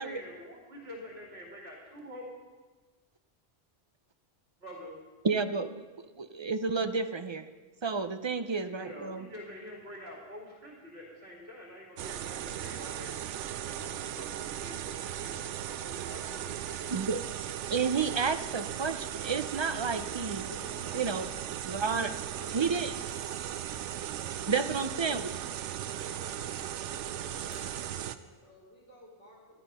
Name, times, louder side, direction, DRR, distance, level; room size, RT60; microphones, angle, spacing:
voice 1, 0.0-2.3 4.6-5.0 8.5-13.2 13.7-17.0 23.9-24.5 24.8-24.9, left 1 dB, 60° right, -3 dB, 2.7 m, -47 dB
voice 2, 5.2-5.9 6.2-7.5 7.8-9.3 16.9-17.2 17.7-20.5 20.9-21.3 21.7-22.1 22.5-22.9 24.5-25.3, right 5 dB, 40° right, 10 dB, 0.4 m, -31 dB
sound 1, 12.0-28.2, right 10 dB, 80° right, 0.9 m, -37 dB
sound 2, 20.3-25.5 25.7-25.8 26.0-28.3, equal, 50° left, 2.3 m, -58 dB
voice 3, 20.5-21.5 22.3-23.8 24.5-25.4 26.0-29.6, left 1 dB, 80° left, -5 dB, 3.5 m, -53 dB
13.5 x 11.5 x 5.5 m, 1.3 s
omnidirectional pair, 1.2 m